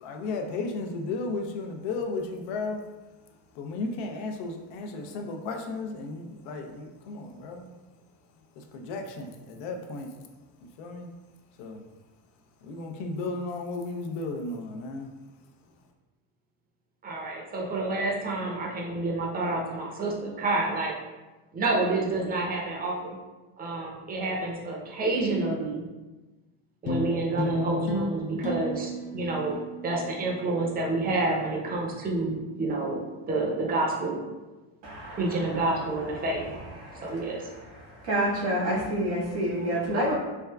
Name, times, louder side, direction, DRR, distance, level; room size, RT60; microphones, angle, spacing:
voice 1, 0.0-2.8 3.6-7.7 8.7-10.1 10.8-11.1 11.6-11.8 12.7-15.1, left 3 dB, 75° left, 4 dB, 0.6 m, -34 dB
voice 2, 17.0-20.9 21.5-23.1 23.6-25.8 26.8-29.6 29.8-33.0 33.3-34.2 35.2-36.5 37.0-37.4, right 2 dB, 20° right, -1 dB, 0.6 m, -28 dB
sound 1, 26.9-31.5, left 1 dB, 30° left, 0.3 m, -34 dB
voice 3, 34.8-35.2 38.1-40.1, right 1 dB, 80° right, -6 dB, 1.5 m, -27 dB
3.4 x 2.3 x 2.2 m, 1.2 s
supercardioid pair, 95°, 44 cm